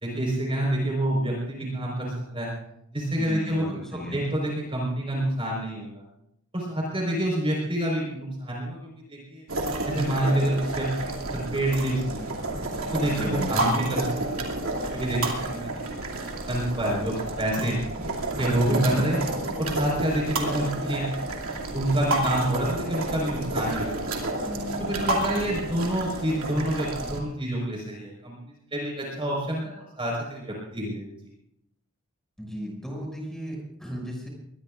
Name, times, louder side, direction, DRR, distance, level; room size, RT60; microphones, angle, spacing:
voice 1, 0.0-2.5 2.9-6.0 6.5-9.4 9.8-12.4 12.9-15.9 16.5-17.8 18.2-19.3 19.6-21.1 21.7-24.2 24.8-31.1, right 1 dB, 25° right, -2 dB, 4.5 m, -28 dB
voice 2, 3.2-4.2 13.2-13.6 18.7-19.1 24.4-25.6 32.4-34.3, equal, ahead, -2 dB, 6.2 m, -36 dB
sound 1, 9.5-27.2, right 2 dB, 75° right, 2.6 m, -30 dB
23.0 x 20.5 x 2.5 m, 0.78 s
head